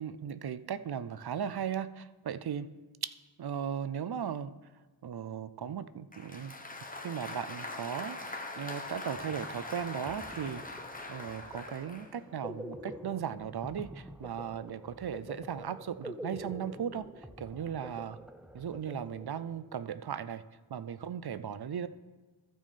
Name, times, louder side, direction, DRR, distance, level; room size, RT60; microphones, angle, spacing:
voice 1, 0.0-2.7 3.0-3.1 3.4-4.5 5.0-6.5 7.0-10.8 11.1-18.2 18.5-20.4 20.7-21.9, right 8 dB, 55° right, 14 dB, 0.5 m, -37 dB
Applause, 6.1-12.1, left 2 dB, 20° left, 1.1 m, -42 dB
sound 1, 9.1-19.7, equal, ahead, 0.5 m, -47 dB
13.5 x 6.1 x 4.2 m, 1.3 s
cardioid pair, 45°, 47 cm